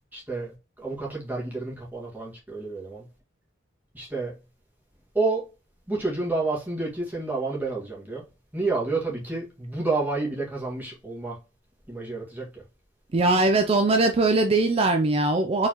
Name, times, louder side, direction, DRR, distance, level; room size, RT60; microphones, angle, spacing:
voice 1, 0.1-3.0 3.9-4.4 5.1-5.5 5.9-8.3 8.5-11.4 11.9-12.5, right 3 dB, 10° right, 1.7 m, -29 dB
voice 2, 13.1-15.7, right 2 dB, 30° right, 0.4 m, -21 dB
4.5 x 3.9 x 2.9 m
head